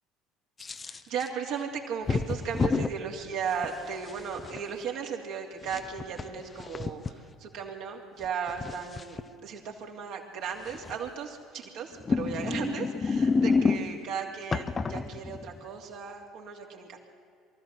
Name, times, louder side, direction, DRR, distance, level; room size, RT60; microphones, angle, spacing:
sound 1, 0.6-1.3 2.1-2.9 3.6-4.6 5.6-7.1 8.2-9.2 10.7-11.1 11.9-14.1 14.5-15.6, left 4 dB, 30° left, 0.9 m, -29 dB
voice 1, 0.9-17.0, right 6 dB, 60° right, 0 dB, 2.9 m, -36 dB
23.5 x 14.0 x 7.9 m, 2.4 s
figure-of-eight pair, 60°, 0 cm